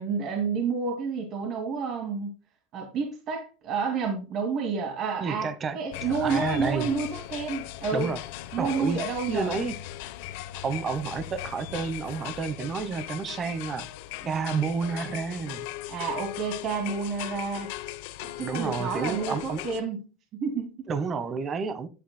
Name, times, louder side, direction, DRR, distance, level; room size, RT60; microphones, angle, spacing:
voice 1, 0.0-2.3 2.7-8.1 8.5-9.6 14.2-14.6 15.9-17.7 18.2-20.0 20.3-20.8, right 5 dB, 45° right, 2.3 m, -30 dB
voice 2, 5.2-6.9 7.9-8.2 8.6-9.0 9.3-9.8 10.6-13.9 14.2-15.7 18.4-19.6 20.9-21.9, right 5 dB, 25° right, 1.0 m, -30 dB
sound 1, 5.9-19.8, left 15 dB, 70° left, 0.8 m, -38 dB
11.0 x 8.7 x 2.2 m
supercardioid pair, 130°, 0 cm